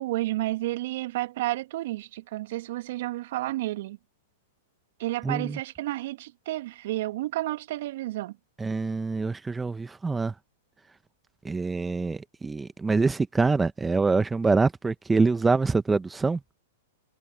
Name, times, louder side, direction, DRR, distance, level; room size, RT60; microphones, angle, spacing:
voice 1, 0.0-4.0 5.0-8.4, right 17 dB, 60° right, 2.3 m, -31 dB
voice 2, 5.2-5.6 8.6-10.3 11.4-16.4, right 4 dB, 10° right, 1.2 m, -25 dB
hypercardioid pair, 110°, 0 cm